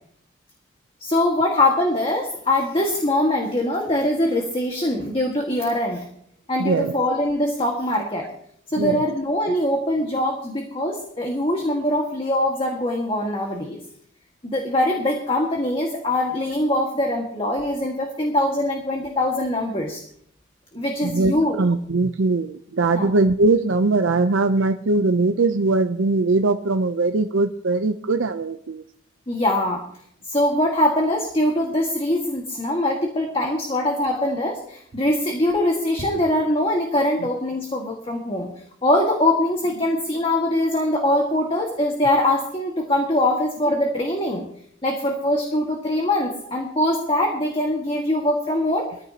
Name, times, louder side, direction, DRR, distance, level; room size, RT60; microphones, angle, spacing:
voice 1, 1.0-6.1 6.5-8.3 8.7-13.8 14.4-20.0 20.7-21.6 22.9-23.1 29.3-29.8 30.2-38.5 38.8-44.5 44.8-48.9, left 1 dB, 30° left, 1 dB, 1.8 m, -22 dB
voice 2, 6.6-6.9 8.8-9.0 21.0-28.8, right 3 dB, 85° right, 7 dB, 0.6 m, -21 dB
21.5 x 15.0 x 2.9 m, 0.66 s
head